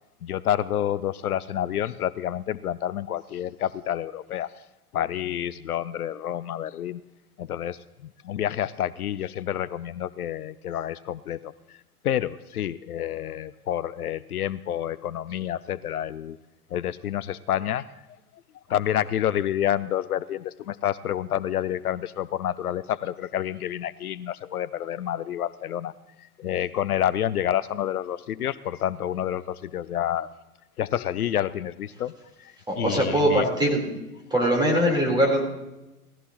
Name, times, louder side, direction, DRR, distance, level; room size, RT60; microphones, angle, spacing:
voice 1, 0.2-4.5 4.9-7.0 7.4-11.5 12.0-16.4 16.7-17.8 18.7-25.9 26.4-30.3 30.8-32.1 32.4-33.5, left 11 dB, 75° left, 17 dB, 0.6 m, -28 dB
voice 2, 32.7-34.0 34.3-35.4, equal, 10° right, -1 dB, 4.0 m, -22 dB
18.5 x 14.0 x 3.0 m, 0.99 s
figure-of-eight pair, 95°, 45 cm